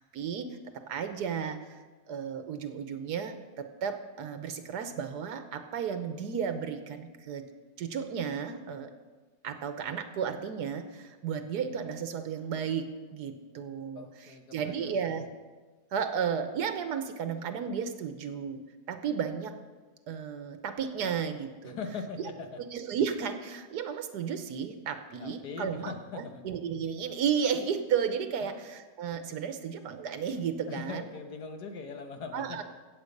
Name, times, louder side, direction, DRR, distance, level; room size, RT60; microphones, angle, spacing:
voice 1, 0.1-0.5 0.9-1.7 2.1-7.4 7.8-8.9 9.4-15.2 15.9-18.6 18.9-19.5 20.1-21.8 22.7-31.0 32.3-32.6, right 7 dB, 85° right, 8 dB, 1.5 m, -33 dB
voice 2, 14.0-14.9 21.6-22.6 25.2-26.4 28.4-28.6 30.7-32.6, left 4 dB, 85° left, 5 dB, 1.8 m, -41 dB
15.5 x 7.8 x 5.3 m, 1.3 s
omnidirectional pair, 1.7 m